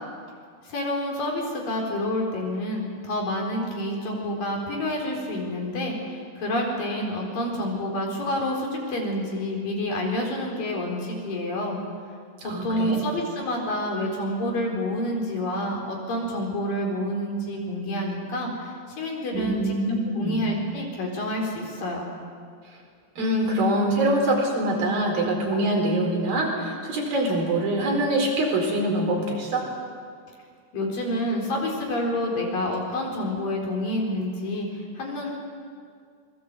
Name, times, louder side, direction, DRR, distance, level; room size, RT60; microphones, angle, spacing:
voice 1, 0.7-11.8 12.4-19.7 20.2-22.1 30.7-35.3, left 1 dB, 60° left, 0 dB, 5.8 m, -28 dB
voice 2, 12.4-13.0 19.3-20.5 23.2-29.7, right 1 dB, 60° right, 0 dB, 6.2 m, -24 dB
27.0 x 21.5 x 8.0 m, 2.1 s
omnidirectional pair, 4.6 m